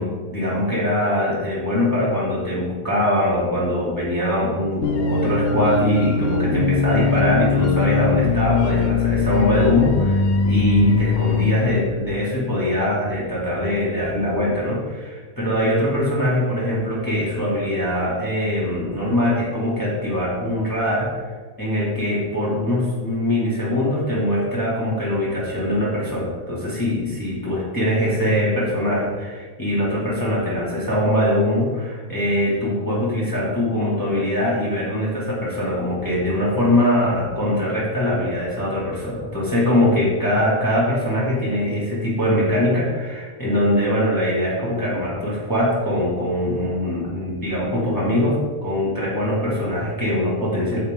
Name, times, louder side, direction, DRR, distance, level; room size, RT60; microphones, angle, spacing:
voice 1, 0.0-21.2 21.6-50.8, left 1 dB, 15° left, -8 dB, 2.1 m, -22 dB
sound 1, 4.8-11.7, left 5 dB, 60° left, 0.7 m, -21 dB
8.3 x 7.8 x 3.7 m, 1.5 s
omnidirectional pair, 1.4 m